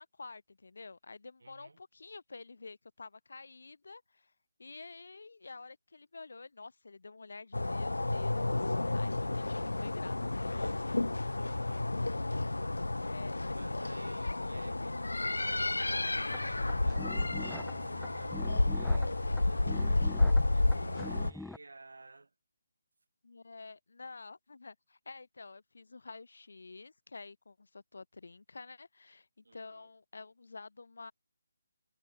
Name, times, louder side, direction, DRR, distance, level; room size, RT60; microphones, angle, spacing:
voice 1, 0.0-4.3 4.6-10.7 13.0-13.8 23.2-31.1, left 3 dB, 70° left, 3.1 m, -49 dB
voice 2, 1.4-1.8 10.5-22.3 29.4-29.9, right 3 dB, 80° right, 6.5 m, -55 dB
sound 1, 7.5-21.3, left 2 dB, 85° left, 0.9 m, -31 dB
sound 2, 16.3-21.6, left 2 dB, ahead, 3.2 m, -46 dB
figure-of-eight pair, 155°, 0 cm